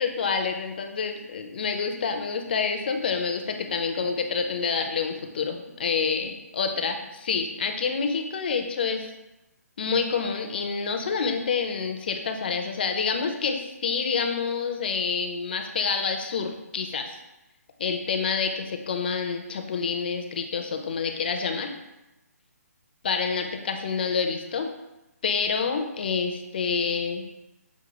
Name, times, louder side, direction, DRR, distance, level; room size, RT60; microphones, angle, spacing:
voice 1, 0.0-9.0 9.8-17.1 17.8-21.7 23.0-24.7 25.2-27.3, left 5 dB, 35° left, 5 dB, 0.4 m, -28 dB
6.0 x 2.2 x 2.9 m, 0.96 s
hypercardioid pair, 165°, 9 cm